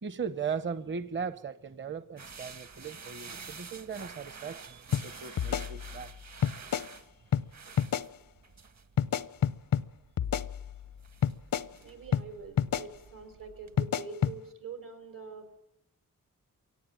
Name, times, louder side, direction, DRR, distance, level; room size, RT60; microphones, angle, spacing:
voice 1, 0.0-6.1, right 6 dB, 35° right, 0.8 m, -38 dB
sound 1, 2.2-13.8, right 5 dB, 55° right, 1.3 m, -49 dB
sound 2, 4.9-5.1 5.4-6.1 6.4-6.9 7.3-7.5 7.8-8.1 9.0-9.9 10.2-10.9 11.2-11.7 12.1-12.3 12.6-12.9 13.8-14.4, left 9 dB, 85° left, 0.8 m, -28 dB
voice 2, 11.8-15.5, right 5 dB, 80° right, 5.5 m, -44 dB
22.5 x 18.0 x 9.0 m
cardioid pair, 60°, 33 cm